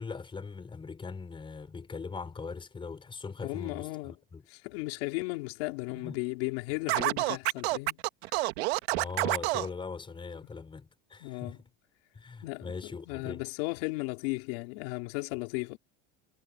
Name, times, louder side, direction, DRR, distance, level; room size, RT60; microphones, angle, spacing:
voice 1, 0.0-4.4 6.0-6.2 8.9-11.6 12.1-13.4, left 4 dB, 15° left, 4.3 m, -40 dB
voice 2, 3.4-4.1 4.5-8.0 8.3-8.4 11.2-11.6 12.4-15.8, left 25 dB, 70° left, 3.5 m, -35 dB
Scratching (performance technique), 6.9-9.7, right 20 dB, 80° right, 1.6 m, -28 dB
supercardioid pair, 135°, 32 cm